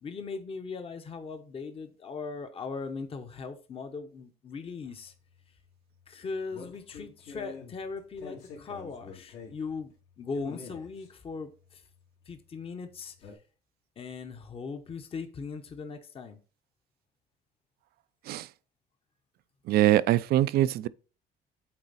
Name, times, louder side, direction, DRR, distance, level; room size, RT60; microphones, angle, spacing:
voice 1, 0.0-5.1 6.1-11.8 12.3-13.1 14.0-16.4, left 4 dB, 35° left, 0.9 m, -39 dB
sound 1, 4.9-13.3, left 5 dB, 80° left, 2.8 m, -48 dB
voice 2, 19.7-20.9, right 14 dB, 65° right, 0.4 m, -23 dB
8.8 x 3.9 x 4.1 m
cardioid pair, 110°, 17 cm